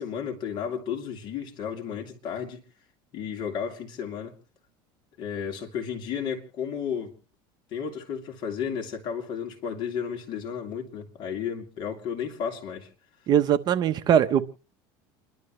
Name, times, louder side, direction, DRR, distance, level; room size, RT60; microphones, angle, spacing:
voice 1, 0.0-2.6 3.1-4.3 5.2-7.1 7.7-12.9, left 7 dB, 45° left, 3.0 m, -33 dB
voice 2, 13.3-14.5, right 9 dB, 40° right, 0.9 m, -21 dB
29.0 x 12.0 x 3.2 m
supercardioid pair, 135°, 11 cm